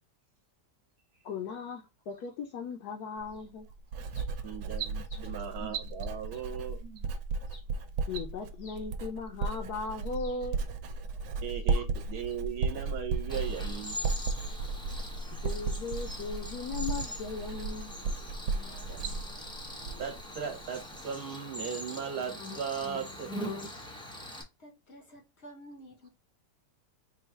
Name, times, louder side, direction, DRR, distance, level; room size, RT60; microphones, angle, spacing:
voice 1, 1.2-3.7 4.1-4.5 7.5-7.6 8.1-10.6 15.4-18.0 18.4-18.8, left 4 dB, 70° left, 1.1 m, -38 dB
Writing, 3.2-20.2 20.5-21.0, right 4 dB, 90° right, 1.3 m, -35 dB
voice 2, 4.4-7.1 11.4-14.0 18.9-19.1 20.0-23.3, right 8 dB, 65° right, 1.2 m, -37 dB
Cricket, 13.3-24.4, left 1 dB, 5° left, 0.3 m, -42 dB
voice 3, 24.3-26.1, right 1 dB, 50° left, 0.8 m, -51 dB
3.9 x 2.3 x 4.4 m
omnidirectional pair, 1.8 m